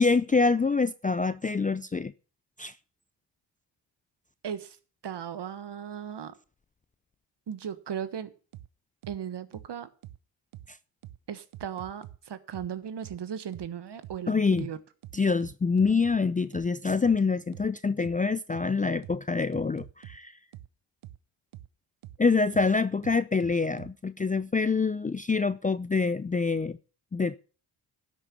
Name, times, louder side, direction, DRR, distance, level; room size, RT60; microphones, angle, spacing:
voice 1, 0.0-2.1 2.6-2.7 10.7-10.8 14.3-14.7 15.1-20.3 22.2-26.8 27.1-27.4, left 4 dB, 15° left, 0.4 m, -26 dB
voice 2, 4.4-4.8 5.0-6.4 7.5-8.3 9.1-9.9 11.3-14.8, right 8 dB, 55° right, 1.4 m, -37 dB
sound 1, 8.5-8.7 9.0-9.2 9.5-9.7 10.0-10.2 10.5-10.7 11.0-11.2 11.5-12.2 12.5-12.7 13.0-13.2 13.5-13.7 14.0-14.2 14.5-14.7 15.0-16.2 16.5-16.7 17.0-17.2 17.5-17.7 18.0-18.2 18.5-18.7 19.0-19.2 19.5-20.2 20.5-20.7 21.0-21.2 21.5-21.7 22.0-22.2 22.5-22.7 23.0-23.9, right 13 dB, 70° right, 0.8 m, -45 dB
12.0 x 6.4 x 6.9 m
supercardioid pair, 50°, 50 cm